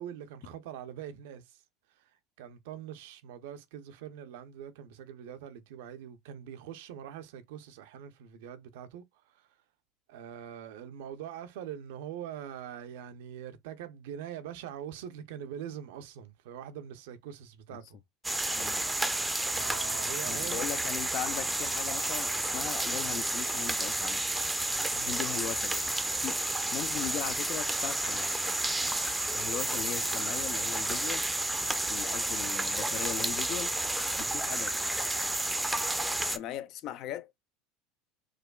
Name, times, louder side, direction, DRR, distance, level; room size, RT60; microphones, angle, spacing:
voice 1, 0.0-1.6 2.0-2.1 2.4-9.5 10.1-18.0 19.5-20.7 24.9-25.2 34.2-34.5, right 9 dB, 75° right, 0.5 m, -43 dB
sound 1, 18.2-36.4, right 2 dB, 10° right, 0.5 m, -31 dB
voice 2, 18.5-18.9 20.2-24.2 25.0-26.4 26.7-28.3 29.3-31.3 31.9-33.7 34.2-34.7 36.2-37.3, left 11 dB, 55° left, 0.4 m, -39 dB
4.8 x 2.2 x 2.2 m
hypercardioid pair, 80°, 0 cm